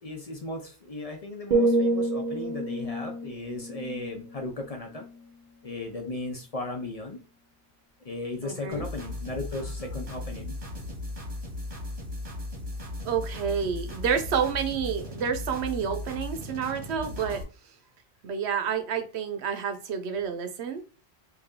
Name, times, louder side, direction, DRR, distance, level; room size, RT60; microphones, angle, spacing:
voice 1, 0.0-5.1 5.6-7.2 8.0-10.6, left 2 dB, 40° left, 0.6 m, -36 dB
sound 1, 1.5-5.5 5.8-6.2, right 2 dB, 55° right, 0.8 m, -29 dB
voice 2, 8.4-8.9 13.0-17.4 18.2-20.8, right 7 dB, 85° right, 0.9 m, -29 dB
sound 2, 8.7-17.4, left 2 dB, 35° right, 1.1 m, -37 dB
3.2 x 2.7 x 3.6 m
omnidirectional pair, 1.1 m